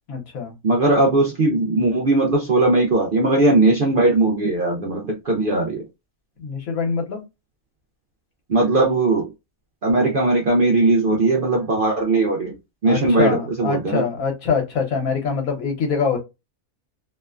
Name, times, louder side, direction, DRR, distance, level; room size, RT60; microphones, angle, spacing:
voice 1, 0.1-0.5 6.4-7.2 12.8-16.2, left 5 dB, 75° left, 1.3 m, -24 dB
voice 2, 0.6-5.8 8.5-9.3 9.8-12.6 12.8-14.0, right 2 dB, 60° right, 0.5 m, -19 dB
2.8 x 2.1 x 2.3 m
omnidirectional pair, 1.5 m